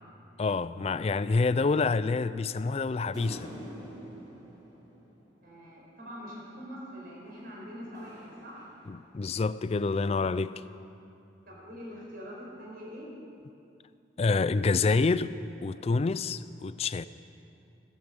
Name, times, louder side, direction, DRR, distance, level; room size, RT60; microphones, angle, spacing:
voice 1, 0.4-3.5 8.9-10.6 14.2-15.3 15.6-17.1, left 4 dB, 30° left, 0.3 m, -27 dB
sound 1, 3.1-5.8 7.3-9.3, equal, 20° right, 4.5 m, -47 dB
voice 2, 5.4-8.7 11.5-13.1 15.7-15.8, equal, 50° right, 4.7 m, -44 dB
15.5 x 15.0 x 5.3 m
head